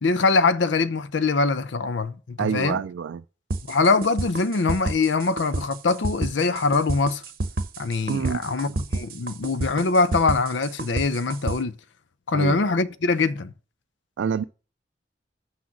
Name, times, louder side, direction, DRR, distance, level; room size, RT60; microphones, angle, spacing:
voice 1, 0.0-2.8 3.7-7.2 7.8-11.7 12.3-13.5, left 3 dB, 80° left, 0.6 m, -23 dB
voice 2, 2.4-3.2 8.1-8.8 12.3-12.7 14.2-14.4, right 7 dB, 85° right, 0.3 m, -27 dB
sound 1, 3.5-11.6, right 2 dB, 50° right, 0.8 m, -29 dB
6.3 x 5.9 x 5.9 m
head